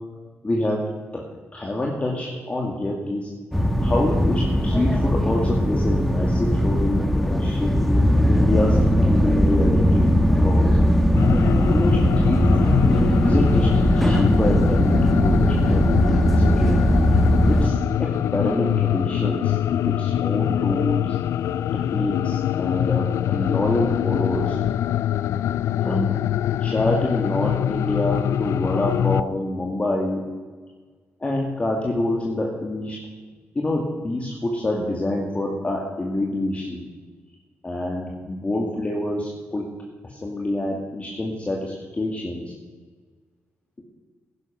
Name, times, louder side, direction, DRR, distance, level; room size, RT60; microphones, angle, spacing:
voice 1, 0.4-0.8 1.1-1.2 1.5-3.3 3.8-8.8 9.1-10.8 11.7-12.8 13.2-16.8 17.5-19.6 19.8-21.2 21.9-24.6 25.8-26.2 26.6-30.2 31.2-33.0 33.5-36.8 37.6-39.6 40.1-42.5, left 1 dB, 30° left, -2 dB, 2.4 m, -26 dB
sound 1, 3.5-17.7, equal, 5° left, 1.4 m, -19 dB
sound 2, 11.2-29.2, left 11 dB, 90° left, 0.3 m, -24 dB
13.5 x 11.0 x 6.0 m, 1.4 s
cardioid pair, 80°, 5 cm